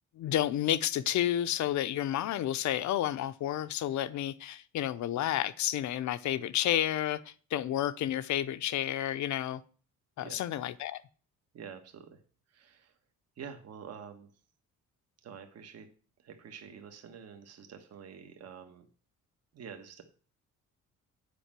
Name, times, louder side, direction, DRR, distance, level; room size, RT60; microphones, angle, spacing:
voice 1, 0.2-9.6 10.2-11.0, left 12 dB, 65° left, 0.7 m, -31 dB
voice 2, 11.5-12.2 12.5-13.0 13.4-14.3 15.2-15.9 16.2-18.9 19.5-20.0, right 7 dB, 55° right, 1.4 m, -47 dB
8.4 x 5.4 x 7.4 m
cardioid pair, 145°, 31 cm